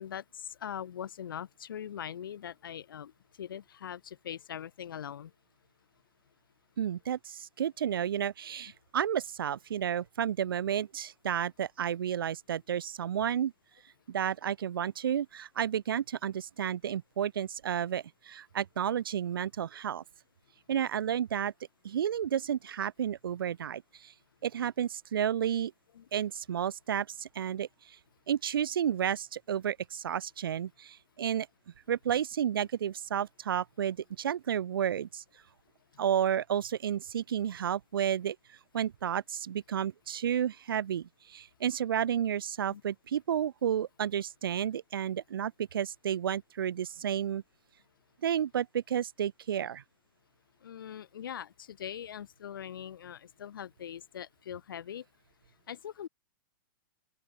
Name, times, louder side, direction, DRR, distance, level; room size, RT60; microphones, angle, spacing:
voice 1, 0.0-3.1 3.4-5.3 26.0-26.1 42.7-42.8 50.6-55.0 55.7-56.1, left 9 dB, 75° left, 3.1 m, -41 dB
voice 2, 6.8-13.5 14.1-20.0 20.7-21.5 21.8-24.1 24.4-25.7 26.1-28.0 28.3-31.5 31.9-35.2 36.0-38.4 38.7-47.4 48.2-49.8, right 9 dB, 85° right, 1.3 m, -31 dB
open air
hypercardioid pair, 175°, 11 cm